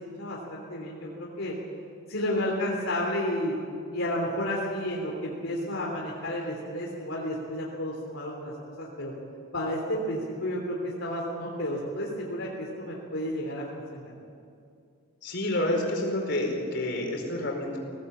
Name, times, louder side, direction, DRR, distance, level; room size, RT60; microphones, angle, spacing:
voice 1, 0.2-1.5 2.1-3.5 3.9-9.1 9.5-13.6 13.9-14.1, left 1 dB, 70° left, -3 dB, 3.3 m, -31 dB
voice 2, 15.2-17.8, left 1 dB, 55° left, 1 dB, 4.7 m, -29 dB
21.5 x 17.5 x 8.6 m, 2.5 s
head